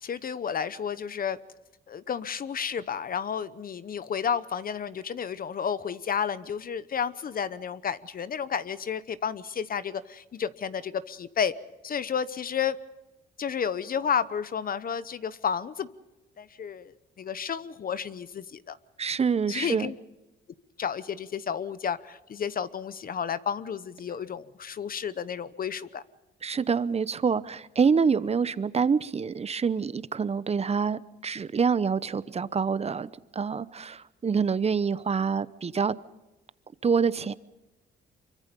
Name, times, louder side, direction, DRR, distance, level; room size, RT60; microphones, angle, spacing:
voice 1, 0.0-1.4 1.9-11.5 11.8-12.8 13.4-15.9 16.4-18.8 19.5-20.0 20.8-26.0, left 7 dB, 45° left, 0.9 m, -31 dB
voice 2, 19.0-19.9 26.4-35.9 36.8-37.3, right 6 dB, 30° right, 0.8 m, -26 dB
25.0 x 23.5 x 5.4 m
cardioid pair, 90°, 20 cm